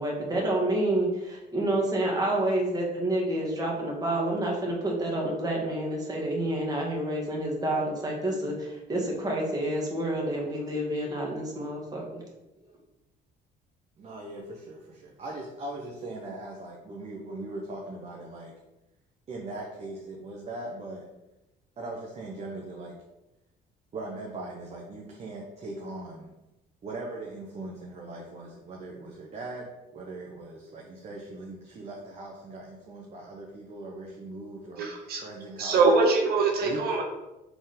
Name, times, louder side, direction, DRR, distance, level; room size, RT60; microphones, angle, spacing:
voice 1, 0.0-12.0, right 1 dB, 20° right, -2 dB, 1.9 m, -28 dB
voice 2, 14.0-18.5 19.3-21.1 21.8-22.9 23.9-26.3 26.8-35.9 36.6-36.8, right 2 dB, 40° right, -1 dB, 1.0 m, -40 dB
voice 3, 34.8-35.2 35.6-37.0, right 3 dB, 65° right, 0 dB, 1.0 m, -23 dB
5.1 x 3.8 x 5.1 m, 0.99 s
cardioid pair, 110°, 17 cm